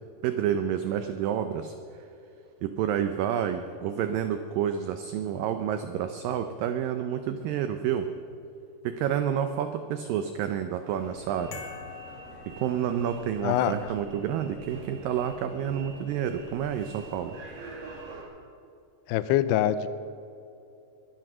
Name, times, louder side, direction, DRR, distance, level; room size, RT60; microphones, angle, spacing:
voice 1, 0.2-1.7 2.6-8.1 8.8-11.6 12.5-17.3, right 9 dB, 90° right, 8 dB, 1.9 m, -29 dB
sound 1, 10.8-18.2, right 3 dB, 55° right, 3.6 m, -45 dB
sound 2, 11.5-13.4, left 6 dB, 55° left, 1.5 m, -44 dB
voice 2, 13.4-13.7 19.1-19.9, left 12 dB, 80° left, 13 dB, 2.6 m, -24 dB
22.5 x 9.2 x 6.2 m, 2.7 s
omnidirectional pair, 4.8 m